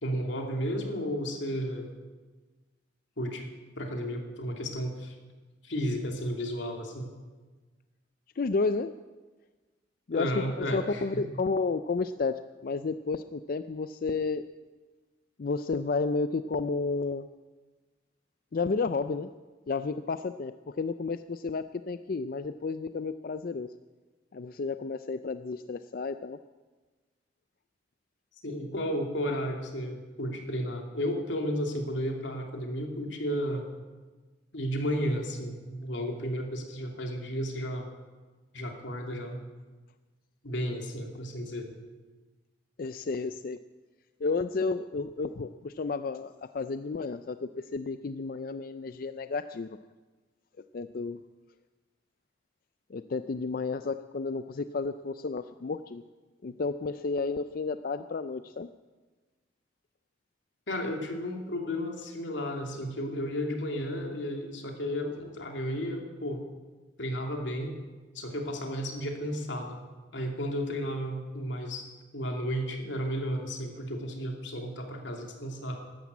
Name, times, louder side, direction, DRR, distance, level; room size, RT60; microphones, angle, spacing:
voice 1, 0.0-1.9 3.2-3.5 3.8-5.2 5.6-7.1 10.1-11.2 28.4-33.7 34.5-37.8 38.5-39.4 40.4-41.7 60.7-66.4 67.0-67.8 68.1-69.8 70.1-71.9 72.1-75.8, equal, 85° left, 2 dB, 2.8 m, -33 dB
voice 2, 8.4-8.9 10.1-14.4 15.4-17.3 18.5-19.3 19.7-23.7 24.3-26.4 42.8-43.6 44.2-49.8 50.7-51.2 52.9-56.0 56.4-58.7, left 4 dB, 50° left, 11 dB, 0.4 m, -32 dB
13.5 x 12.0 x 8.3 m, 1.3 s
head